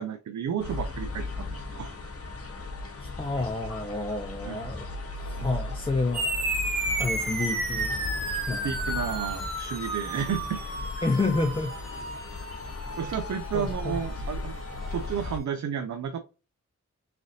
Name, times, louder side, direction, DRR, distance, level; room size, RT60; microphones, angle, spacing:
voice 1, 0.0-1.9 4.4-4.6 8.5-10.6 13.0-14.6 14.9-16.2, right 8 dB, 75° right, 0.5 m, -32 dB
sound 1, 0.6-15.4, left 2 dB, 55° left, 0.9 m, -37 dB
voice 2, 3.0-4.9 5.2-6.3 7.0-7.9 8.5-8.7 11.0-11.8 13.5-14.0, left 3 dB, 20° left, 0.5 m, -29 dB
sound 2, 6.1-15.0, right 2 dB, 35° right, 1.3 m, -33 dB
3.7 x 3.3 x 2.6 m
wide cardioid pair, 75°, 29 cm